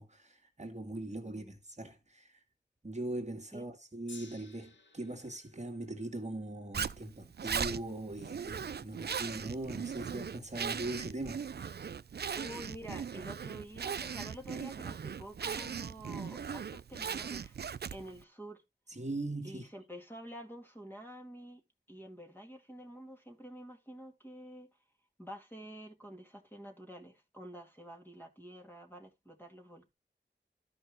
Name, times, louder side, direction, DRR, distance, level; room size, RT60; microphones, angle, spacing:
voice 1, 0.0-2.4 2.8-11.4 18.9-19.7, right 2 dB, 40° right, 1.8 m, -40 dB
Gong, 4.1-10.4 11.2-11.3, left 3 dB, 80° left, 1.8 m, -60 dB
Zipper (clothing), 6.7-18.2, right 7 dB, 60° right, 0.4 m, -39 dB
voice 2, 12.3-17.6 17.9-18.6 19.4-21.6 21.9-24.7 25.2-29.9, equal, 10° left, 2.3 m, -48 dB
12.5 x 5.3 x 3.5 m
wide cardioid pair, 50°, 19 cm